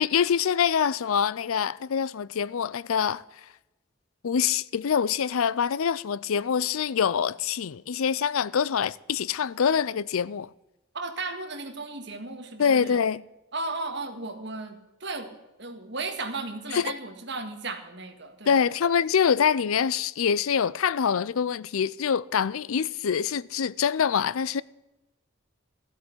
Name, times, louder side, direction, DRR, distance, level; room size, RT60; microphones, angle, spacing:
voice 1, 0.0-3.2 4.2-10.5 12.6-13.2 16.7-16.9 18.5-24.6, left 7 dB, 85° left, 0.5 m, -25 dB
voice 2, 10.9-13.0 13.5-15.3 15.6-19.0, right 3 dB, 55° right, 1.9 m, -35 dB
13.5 x 8.3 x 7.9 m
head